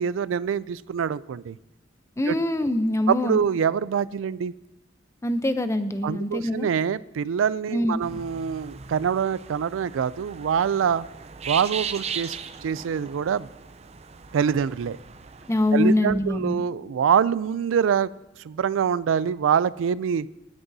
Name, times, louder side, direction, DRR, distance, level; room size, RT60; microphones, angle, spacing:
voice 1, 0.0-1.6 2.3-2.4 3.1-4.5 6.0-11.0 11.5-13.5 14.3-15.0 15.7-18.1 18.4-20.3, right 7 dB, 90° right, 19 dB, 0.3 m, -25 dB
voice 2, 2.2-3.4 5.2-6.7 7.7-8.0 15.5-16.6, left 1 dB, 15° left, 10 dB, 0.6 m, -24 dB
sound 1, 8.0-16.0, right 6 dB, 35° right, 0.5 m, -38 dB
21.5 x 9.7 x 2.7 m, 1.0 s
head